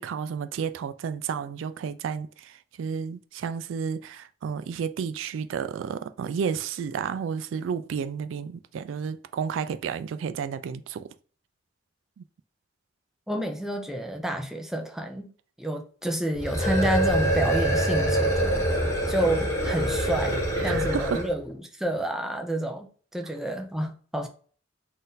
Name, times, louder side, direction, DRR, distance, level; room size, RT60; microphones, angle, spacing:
voice 1, 0.0-11.1 12.2-12.3 20.6-21.2, right 6 dB, 80° right, 0.3 m, -32 dB
voice 2, 13.3-15.3 15.6-18.6 19.1-24.3, right 1 dB, ahead, 0.5 m, -29 dB
sound 1, 16.3-21.4, right 1 dB, 15° left, 1.0 m, -25 dB
4.0 x 2.5 x 3.9 m
head